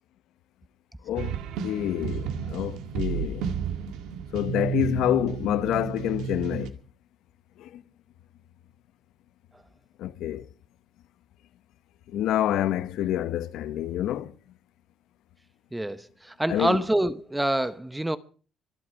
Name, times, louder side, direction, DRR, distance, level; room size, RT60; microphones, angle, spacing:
voice 1, 1.0-3.5 4.3-6.8 7.6-7.8 10.0-10.5 12.1-14.3 16.5-16.8, left 12 dB, 70° left, 0.9 m, -27 dB
sound 1, 1.2-6.7, right 8 dB, 85° right, 1.8 m, -32 dB
voice 2, 15.7-18.2, right 1 dB, 5° right, 0.7 m, -26 dB
24.0 x 8.1 x 5.7 m
cardioid pair, 165°, 0 cm